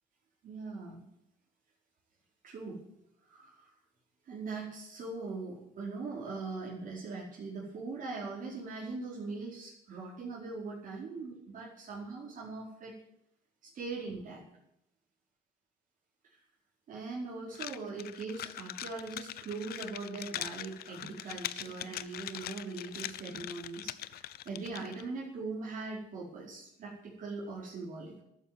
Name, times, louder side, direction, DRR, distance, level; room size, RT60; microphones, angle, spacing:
voice 1, 0.4-1.0 2.4-2.8 3.3-3.7 4.2-12.9 13.6-14.4 16.2-16.4 16.9-28.1, right 3 dB, 50° right, -5 dB, 5.1 m, -41 dB
sound 1, 17.5-25.0, left 13 dB, 65° left, 0.8 m, -42 dB
12.5 x 9.4 x 9.3 m, 0.79 s
cardioid pair, 110°, 17 cm